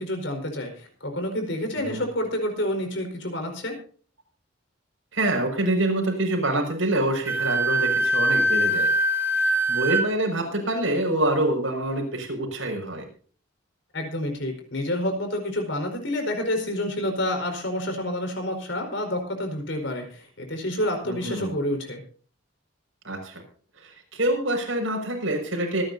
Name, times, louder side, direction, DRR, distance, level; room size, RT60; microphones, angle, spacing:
voice 1, 0.0-3.7 13.9-22.0, left 1 dB, 65° left, 5 dB, 4.8 m, -28 dB
voice 2, 5.1-8.9 9.4-13.0 21.0-21.5 23.0-23.4 23.8-25.8, right 1 dB, 75° right, 2 dB, 6.0 m, -26 dB
Wind instrument woodwind instrument, 7.3-10.1, right 1 dB, 10° right, 1.5 m, -22 dB
25.5 x 10.5 x 2.7 m, 0.44 s
head